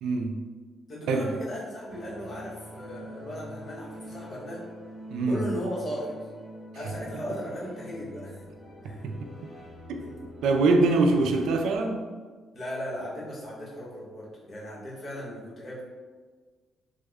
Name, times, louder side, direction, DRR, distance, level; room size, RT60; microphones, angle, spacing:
voice 1, 0.0-0.4 1.1-1.3 5.1-5.4 9.0-9.3 10.4-12.0, right 3 dB, 80° right, 4 dB, 0.4 m, -23 dB
voice 2, 0.9-4.6 5.3-6.1 6.7-8.4 8.8-9.0 10.0-10.1 12.5-15.8, equal, 40° left, -7 dB, 1.3 m, -37 dB
sound 1, 1.9-11.8, equal, 20° left, 1.5 m, -45 dB
3.4 x 2.2 x 3.5 m, 1.5 s
cardioid pair, 90°, 0 cm